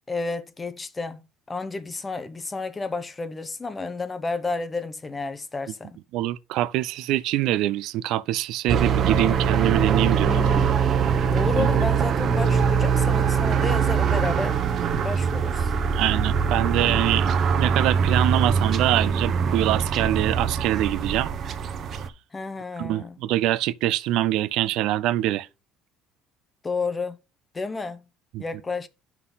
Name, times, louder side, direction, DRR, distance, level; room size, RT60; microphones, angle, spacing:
voice 1, 0.1-6.0 10.2-10.8 11.3-14.6 15.0-15.7 22.3-23.2 26.6-27.2 27.5-28.0 28.4-28.9, left 3 dB, 20° left, 0.9 m, -31 dB
voice 2, 6.1-10.4 11.6-11.9 15.9-17.3 17.6-21.3 22.8-25.5 28.3-28.4, right 14 dB, 70° right, 0.5 m, -24 dB
sound 1, 8.7-22.1, right 6 dB, 45° right, 0.9 m, -22 dB
9.6 x 5.8 x 4.0 m
cardioid pair, 115°, 0 cm